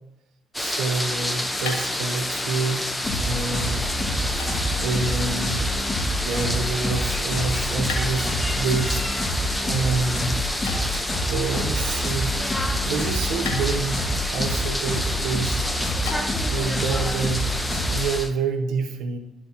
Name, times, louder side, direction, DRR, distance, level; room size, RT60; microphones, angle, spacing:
sound 1, 0.5-18.3, left 1 dB, 10° left, 0.9 m, -28 dB
voice 1, 0.6-2.9 3.3-4.2 4.8-5.7 6.2-9.3 9.7-10.5 11.3-12.3 12.8-15.6 15.9-16.2 16.5-17.5 17.9-19.2, right 4 dB, 75° right, 6 dB, 0.7 m, -28 dB
sound 2, 1.0-16.6, left 4 dB, 85° left, 1.2 m, -42 dB
sound 3, 3.0-18.0, equal, 35° left, 2.2 m, -28 dB
12.5 x 4.4 x 2.9 m, 0.97 s
hypercardioid pair, 45°, 0 cm